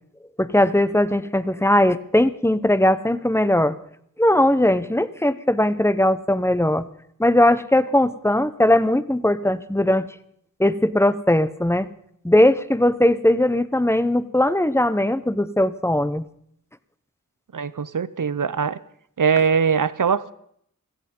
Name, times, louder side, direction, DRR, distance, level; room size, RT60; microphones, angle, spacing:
voice 1, 0.4-3.7 4.2-6.9 7.2-10.1 10.6-11.9 12.2-16.2, left 1 dB, 10° left, 14 dB, 0.9 m, -19 dB
voice 2, 17.5-18.8 19.2-20.3, right 6 dB, 65° right, 16 dB, 0.8 m, -21 dB
17.0 x 14.5 x 5.4 m, 0.66 s
wide cardioid pair, 60°, 33 cm